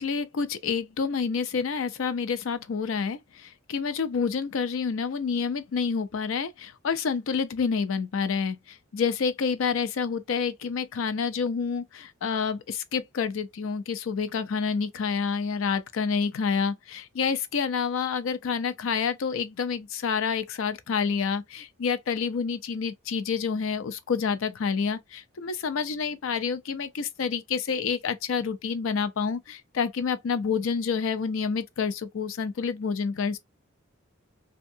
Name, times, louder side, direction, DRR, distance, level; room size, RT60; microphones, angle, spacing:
voice 1, 0.0-8.6 8.9-33.4, left 5 dB, 75° left, 0.4 m, -28 dB
2.6 x 2.2 x 2.6 m
head